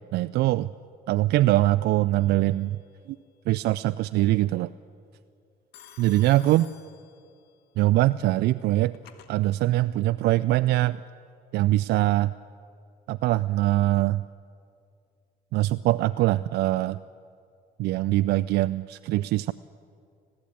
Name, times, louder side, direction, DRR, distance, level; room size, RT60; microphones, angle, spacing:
voice 1, 0.1-0.7 1.1-2.8 3.5-4.7 6.0-6.7 7.8-9.0 9.3-11.0 11.5-12.3 13.1-14.2 15.5-17.0 17.8-19.5, right 16 dB, 75° right, 13 dB, 0.4 m, -23 dB
Telephone, 2.1-2.7 5.7-7.6 8.6-9.3, left 9 dB, 80° left, 1.6 m, -52 dB
20.0 x 15.0 x 8.7 m, 2.4 s
cardioid pair, 110°, 17 cm